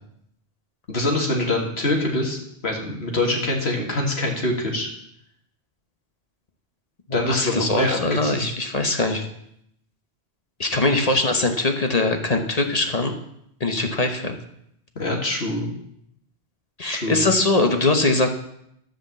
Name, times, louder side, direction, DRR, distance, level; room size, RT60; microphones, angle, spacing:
voice 1, 0.9-4.9 7.1-8.5 11.1-11.2 15.0-15.7 16.9-17.2, left 1 dB, 75° left, 0 dB, 2.4 m, -24 dB
voice 2, 7.1-9.2 10.6-13.1 13.6-14.4 16.8-18.3, left 2 dB, 40° left, 5 dB, 1.1 m, -22 dB
13.5 x 5.2 x 7.4 m, 0.75 s
omnidirectional pair, 1.1 m